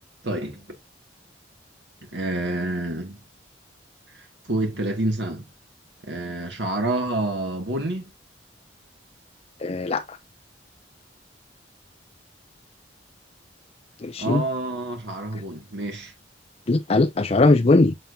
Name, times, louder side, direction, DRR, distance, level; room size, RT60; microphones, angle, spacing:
voice 1, 0.2-0.8 2.1-3.2 4.1-5.4 6.1-8.1 14.2-16.1, right 2 dB, 70° right, 2.0 m, -28 dB
voice 2, 9.6-10.0 14.0-14.4 16.7-17.9, left 2 dB, 35° left, 0.5 m, -19 dB
7.3 x 6.9 x 2.7 m
head